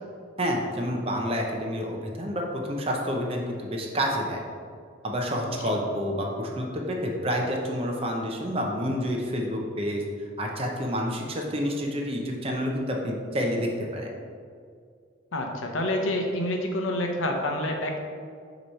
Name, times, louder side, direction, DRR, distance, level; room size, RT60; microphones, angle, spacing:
voice 1, 0.4-4.4 5.0-10.0 10.4-14.1, equal, 30° right, 0 dB, 0.7 m, -29 dB
voice 2, 15.3-18.0, left 1 dB, 80° left, 2 dB, 0.8 m, -28 dB
6.6 x 3.1 x 5.4 m, 2.2 s
head